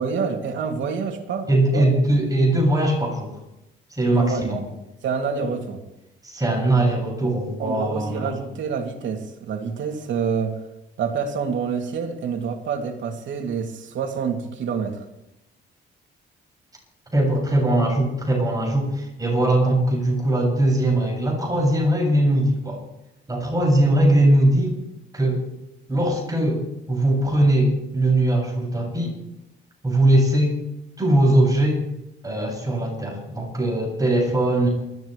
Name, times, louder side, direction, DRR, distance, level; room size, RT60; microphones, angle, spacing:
voice 1, 0.0-1.9 4.1-5.8 7.6-10.6 11.0-15.0, right 6 dB, 70° right, 3 dB, 3.0 m, -27 dB
voice 2, 1.5-3.4 3.9-4.6 5.3-5.4 6.2-8.3 17.1-22.8 23.3-24.8 25.1-25.4 25.9-29.1 29.8-30.6 31.0-31.8 32.2-34.7, right 1 dB, 20° right, -1 dB, 7.6 m, -20 dB
28.5 x 13.5 x 3.4 m, 0.90 s
cardioid pair, 90°, 20 cm